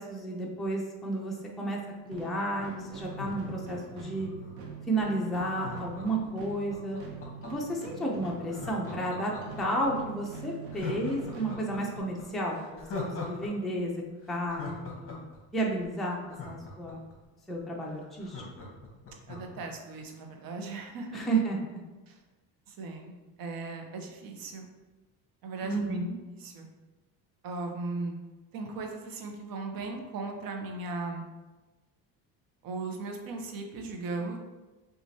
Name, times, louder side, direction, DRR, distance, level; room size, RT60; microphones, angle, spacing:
voice 1, 0.0-1.8 2.0-4.3 4.9-7.0 7.4-9.3 9.6-14.0 14.3-15.2 15.5-17.0 17.5-18.4 21.1-21.8 25.6-26.2, right 1 dB, ahead, -3 dB, 0.5 m, -32 dB
sound 1, 2.1-12.2, right 6 dB, 90° right, 0.9 m, -44 dB
Laughter, 3.0-4.7 5.6-7.8 8.5-9.9 10.3-10.4 10.7-13.5 13.8-13.9 14.2-17.2 17.6-17.7 17.9-19.6 20.0-20.1, left 4 dB, 35° left, 1.0 m, -41 dB
voice 2, 19.3-21.3 22.1-22.2 22.7-23.1 23.4-24.7 25.4-26.0 26.4-26.7 27.4-28.2 28.5-31.2 32.6-34.4, right 3 dB, 65° right, 3 dB, 0.8 m, -37 dB
6.1 x 2.5 x 2.7 m, 1.2 s
cardioid pair, 125°, 38 cm